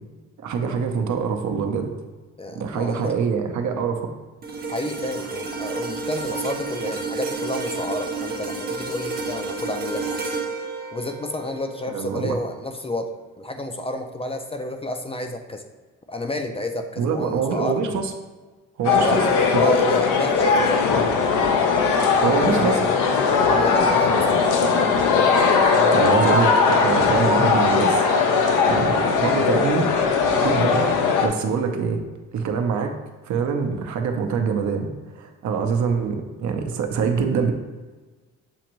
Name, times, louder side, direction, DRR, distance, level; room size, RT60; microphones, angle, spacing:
voice 1, 0.4-1.9 2.6-4.1 11.9-12.4 17.0-18.1 18.8-19.2 21.7-21.9 22.2-22.8 25.9-28.1 28.7-29.9 30.4-30.9 31.2-32.0 32.3-33.0 33.2-34.9 35.2-37.5, right 6 dB, 70° right, 5 dB, 0.7 m, -24 dB
voice 2, 2.4-3.1 4.7-10.2 10.9-15.6 16.1-17.8 18.9-21.3 22.3-22.8 23.5-24.5, left 2 dB, 20° left, 5 dB, 0.4 m, -30 dB
sound 1, 4.4-12.8 13.2-13.4, right 4 dB, 30° right, 0.7 m, -31 dB
sound 2, 18.8-31.3, left 5 dB, 90° left, 0.6 m, -19 dB
7.0 x 2.5 x 3.0 m, 1.3 s
cardioid pair, 90°, 30 cm